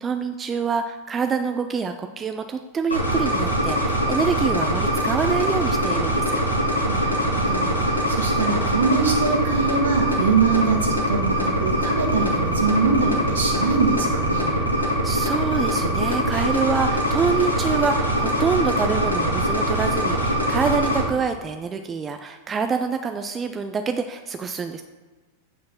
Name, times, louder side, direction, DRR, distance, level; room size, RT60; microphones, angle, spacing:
voice 1, 0.0-6.4 14.5-24.8, right 5 dB, 20° right, 6 dB, 0.4 m, -26 dB
sound 1, 2.9-21.0, equal, 90° left, 1.7 m, -23 dB
voice 2, 6.9-14.5, right 4 dB, 65° right, 1 dB, 1.6 m, -23 dB
8.3 x 4.6 x 5.9 m, 1.3 s
figure-of-eight pair, 90°, 0 cm